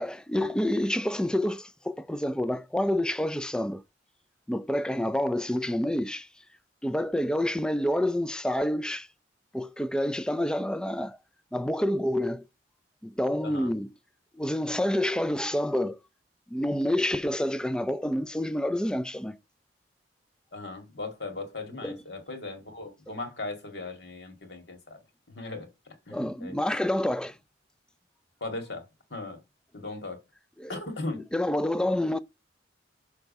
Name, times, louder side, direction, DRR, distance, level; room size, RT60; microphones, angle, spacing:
voice 1, 0.0-3.8 4.5-6.3 6.8-9.1 9.5-11.2 11.5-12.5 13.0-13.9 14.3-16.0 16.5-19.4 21.8-22.0 23.1-23.2 26.1-27.4 30.6-30.7 31.1-32.2, left 1 dB, 5° left, 0.3 m, -28 dB
voice 2, 20.5-25.0 25.3-26.6 28.4-29.4 29.7-30.2 30.7-31.3, left 2 dB, 60° left, 2.0 m, -38 dB
6.3 x 3.5 x 5.3 m
head